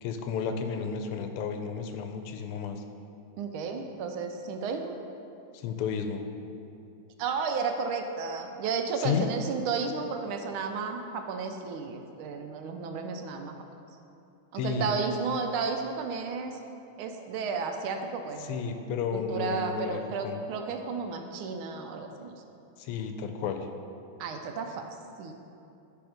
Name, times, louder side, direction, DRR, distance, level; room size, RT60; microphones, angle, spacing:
voice 1, 0.0-2.8 5.5-6.2 9.0-9.3 14.6-15.0 18.4-20.4 22.8-23.7, left 6 dB, 90° left, 6 dB, 1.5 m, -32 dB
voice 2, 3.4-5.0 7.2-13.5 14.5-16.6 17.0-18.6 19.1-22.3 24.2-25.3, right 5 dB, 80° right, 5 dB, 1.4 m, -33 dB
10.0 x 3.4 x 5.1 m, 2.7 s
omnidirectional pair, 2.4 m